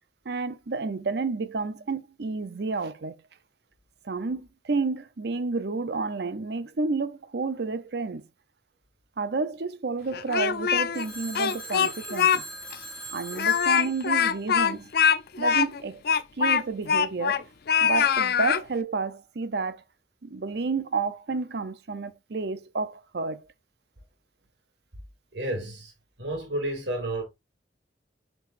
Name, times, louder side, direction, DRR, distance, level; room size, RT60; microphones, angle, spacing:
voice 1, 0.3-3.2 4.0-8.2 9.2-12.4 13.1-14.9 15.4-16.0 16.4-17.5 17.8-19.8 20.2-23.4, right 4 dB, 65° right, 0.6 m, -30 dB
Speech, 10.1-11.0 11.3-12.4 12.7-12.8 13.3-17.4 17.7-18.6, left 7 dB, 60° left, 0.5 m, -23 dB
Telephone, 10.9-15.2, right 2 dB, 5° left, 3.2 m, -42 dB
voice 2, 25.3-25.9 26.2-27.2, right 1 dB, 90° right, 2.5 m, -31 dB
8.1 x 4.6 x 2.5 m
head